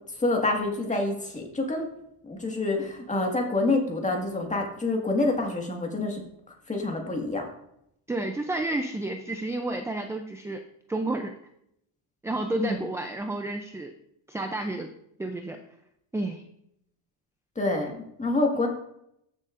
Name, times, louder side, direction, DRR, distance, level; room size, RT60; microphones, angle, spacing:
voice 1, 0.2-1.9 2.3-6.2 6.7-7.5 12.6-12.8 17.6-18.7, left 2 dB, 15° left, 1 dB, 1.8 m, -27 dB
voice 2, 8.1-10.6 10.9-11.4 12.2-13.9 14.3-14.9 15.2-15.6 16.1-16.4, right 2 dB, 5° right, 5 dB, 0.3 m, -30 dB
14.0 x 6.6 x 2.5 m, 0.75 s
cardioid pair, 135°, 49 cm